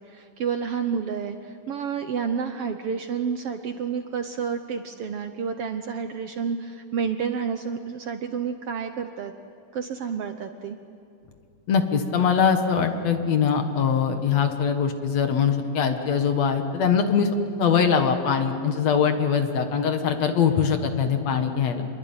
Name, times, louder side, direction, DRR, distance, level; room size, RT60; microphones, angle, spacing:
voice 1, 0.0-9.3 9.7-10.8, right 6 dB, 65° right, 7 dB, 1.6 m, -30 dB
voice 2, 11.7-17.3 17.6-21.8, left 6 dB, 60° left, 6 dB, 2.7 m, -22 dB
27.0 x 22.0 x 8.9 m, 2.4 s
omnidirectional pair, 3.5 m